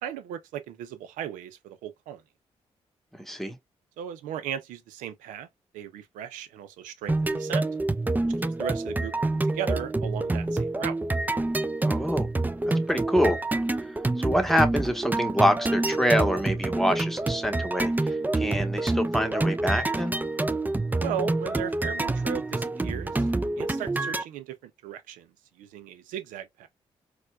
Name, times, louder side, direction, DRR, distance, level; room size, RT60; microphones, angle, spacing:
voice 1, 0.0-2.2 4.0-5.5 5.7-7.6 8.4-10.9 21.0-23.3 23.6-25.3 25.6-26.7, right 9 dB, 85° right, 0.5 m, -36 dB
voice 2, 3.1-3.6 11.8-12.3 12.9-13.4 14.2-20.2, equal, ahead, 1.1 m, -26 dB
sound 1, 7.1-24.2, right 2 dB, 15° right, 0.4 m, -27 dB
4.3 x 2.3 x 2.2 m
hypercardioid pair, 40°, 13 cm